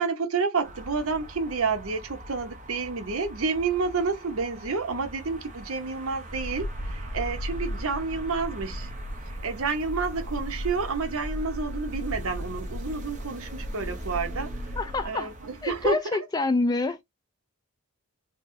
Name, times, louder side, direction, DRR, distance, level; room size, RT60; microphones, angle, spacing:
voice 1, 0.0-8.9 9.3-14.7 15.0-16.0, right 4 dB, 70° right, 0.8 m, -29 dB
sound 1, 0.6-15.9, right 1 dB, 30° right, 0.7 m, -44 dB
sound 2, 6.3-15.1, equal, 80° left, 1.3 m, -36 dB
voice 2, 14.8-15.3 15.6-17.0, left 3 dB, 20° left, 0.3 m, -27 dB
4.1 x 2.1 x 2.7 m
head